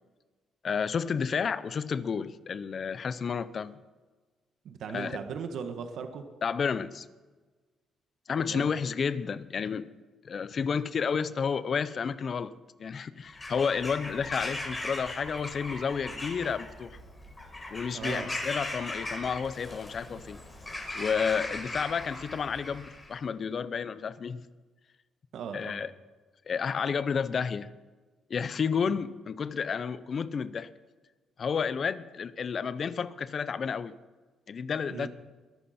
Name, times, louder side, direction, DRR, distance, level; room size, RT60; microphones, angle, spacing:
voice 1, 0.6-3.8 4.9-5.2 6.4-7.1 8.3-9.9 10.2-12.5 12.8-17.0 17.7-20.4 20.9-24.4 25.5-25.9 26.5-27.7 28.3-30.7 31.4-33.9 34.5-35.1, left 6 dB, 50° left, 0.8 m, -31 dB
voice 2, 4.6-6.2 8.5-8.7 17.9-18.3 25.3-25.8 34.9-35.1, right 6 dB, 70° right, 1.5 m, -37 dB
Bird vocalization bird call bird song / Crow, 13.3-23.1, left 2 dB, 25° left, 4.7 m, -39 dB
22.5 x 11.5 x 4.4 m
cardioid pair, 90°, 0 cm